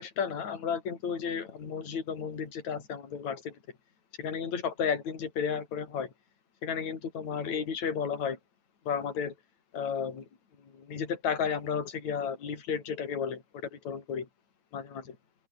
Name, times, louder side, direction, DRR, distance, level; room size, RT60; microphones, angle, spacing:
voice 1, 0.0-3.6 4.2-6.1 6.6-8.4 8.9-9.3 9.7-10.3 10.6-14.3 14.7-15.2, left 7 dB, 40° left, 5.2 m, -33 dB
omnidirectional pair, 5.0 m